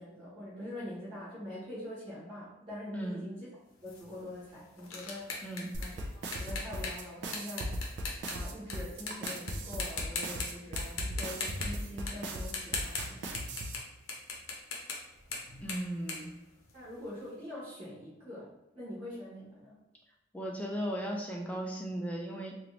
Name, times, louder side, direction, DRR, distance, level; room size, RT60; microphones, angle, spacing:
voice 1, 0.0-3.5 3.8-7.9 8.3-13.3 16.7-19.7, left 1 dB, 30° right, -11 dB, 1.0 m, -44 dB
voice 2, 2.9-3.3 5.4-5.7 15.6-16.3 20.3-22.6, right 1 dB, 5° left, -2 dB, 0.4 m, -36 dB
sound 1, 3.9-8.7 9.1-9.5 9.8-10.5 10.8-17.1, left 4 dB, 90° left, 0.7 m, -39 dB
sound 2, 5.7-13.7, right 1 dB, 55° right, 0.4 m, -37 dB
3.0 x 2.5 x 3.1 m, 0.95 s
head